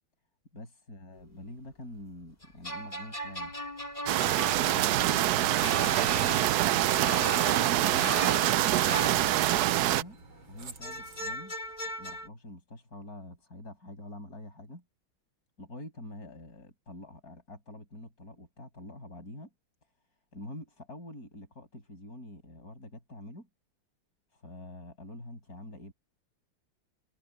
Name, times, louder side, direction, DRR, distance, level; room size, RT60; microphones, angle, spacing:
voice 1, 0.5-3.6 4.6-7.0 7.7-8.2 8.8-10.2 10.5-11.5 12.0-14.8 15.6-19.5 20.3-23.5 24.3-25.9, left 1 dB, 40° left, 7.2 m, -46 dB
sound 1, 2.4-9.9 10.8-12.3, equal, 20° left, 3.6 m, -38 dB
sound 2, 4.1-10.0, right 14 dB, 85° right, 0.8 m, -25 dB
Aircraft, 4.5-11.4, right 3 dB, 70° right, 3.5 m, -46 dB
omnidirectional pair, 2.3 m